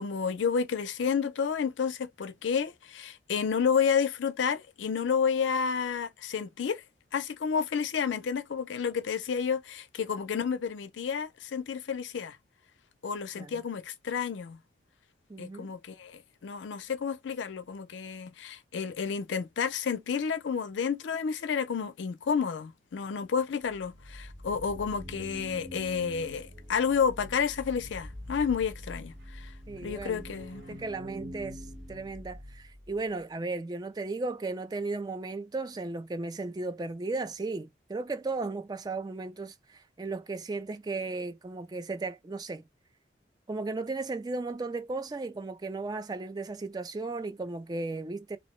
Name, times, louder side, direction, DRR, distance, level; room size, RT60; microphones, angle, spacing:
voice 1, 0.0-6.8 7.1-12.4 13.0-14.6 15.4-29.5 29.8-30.8, left 6 dB, 85° left, 0.4 m, -30 dB
voice 2, 15.3-15.7 29.7-30.2 30.7-31.6 31.9-42.6 43.5-48.4, right 3 dB, 20° right, 0.3 m, -35 dB
sound 1, 23.7-33.0, equal, 60° right, 1.0 m, -45 dB
2.6 x 2.0 x 3.0 m
head